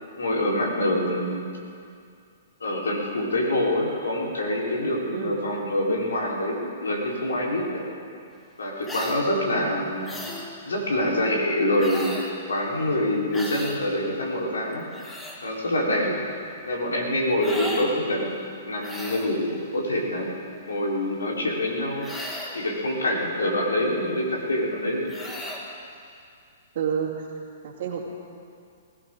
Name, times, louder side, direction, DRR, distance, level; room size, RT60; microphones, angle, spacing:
voice 1, 0.2-1.5 2.6-7.8 8.6-10.1 10.7-12.1 12.5-14.9 15.4-16.1 16.6-18.3 18.7-20.3 20.6-22.1 22.5-25.1, left 1 dB, 85° left, -3 dB, 4.2 m, -25 dB
voice 2, 5.1-5.4 9.4-9.8 16.0-16.2 26.7-27.3 27.6-28.0, right 7 dB, 60° right, -4 dB, 2.4 m, -30 dB
sound 1, 8.8-9.2 10.0-10.5 11.8-12.4 13.3-13.8 14.7-15.4 17.4-17.9 18.8-19.3 22.0-22.6 25.1-25.7, left 1 dB, 10° left, 2.2 m, -35 dB
20.5 x 16.5 x 3.9 m, 2.4 s
hypercardioid pair, 125°, 0 cm